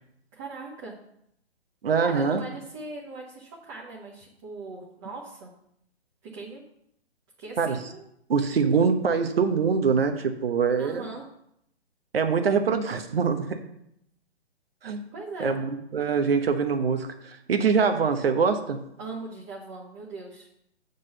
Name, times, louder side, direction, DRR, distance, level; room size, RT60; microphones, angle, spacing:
voice 1, 0.3-0.9 2.0-5.5 6.3-6.6 7.4-8.1 10.8-11.2 15.1-15.5 19.0-20.5, right 3 dB, 25° right, -4 dB, 1.3 m, -39 dB
voice 2, 1.8-2.4 7.6-7.8 8.3-11.1 12.1-13.6 14.8-15.0 15.4-18.8, right 5 dB, 60° right, 7 dB, 1.1 m, -24 dB
7.4 x 4.0 x 6.6 m, 0.76 s
figure-of-eight pair, 130°, 33 cm